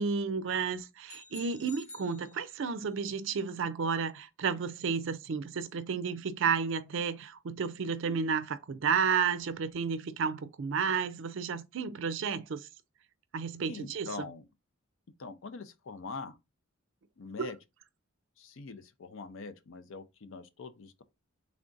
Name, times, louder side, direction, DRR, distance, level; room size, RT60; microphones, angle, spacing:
voice 1, 0.0-12.7 13.3-14.1 17.4-17.5, right 6 dB, 60° right, 0.4 m, -32 dB
sound 1, 1.1-2.9, left 3 dB, 35° left, 0.8 m, -51 dB
voice 2, 13.7-14.4 15.2-16.4 17.2-17.6 18.4-21.0, left 4 dB, 60° left, 0.5 m, -43 dB
3.4 x 2.5 x 3.7 m
head